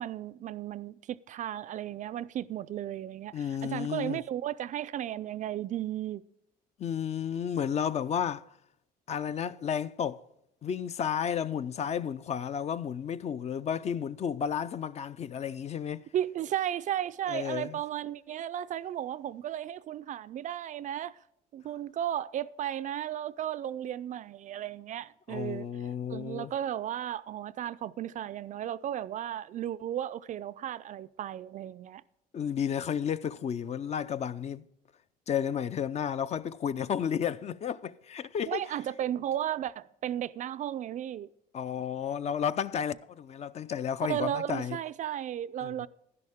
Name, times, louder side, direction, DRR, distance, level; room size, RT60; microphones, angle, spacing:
voice 1, 0.0-6.2 16.1-21.2 21.5-25.7 26.1-32.0 38.5-41.3 44.1-45.9, right 11 dB, 50° right, 0.4 m, -34 dB
voice 2, 3.3-4.2 6.8-8.4 9.1-10.2 10.6-16.0 17.3-17.8 25.3-26.5 32.3-34.6 35.3-38.6 41.5-44.8 45.6-45.7, left 8 dB, 40° left, 0.4 m, -32 dB
11.0 x 11.0 x 3.5 m
cardioid pair, 110°, 17 cm